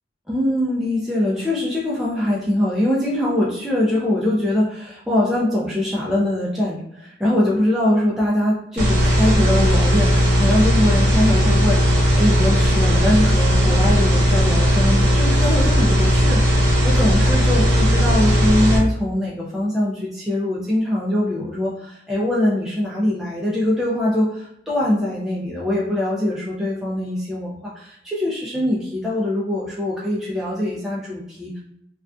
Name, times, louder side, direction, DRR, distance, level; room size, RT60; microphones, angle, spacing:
voice 1, 0.3-31.6, left 1 dB, ahead, -6 dB, 0.3 m, -22 dB
sound 1, 8.8-18.8, equal, 70° right, 0.7 m, -17 dB
2.4 x 2.3 x 2.2 m, 0.77 s
head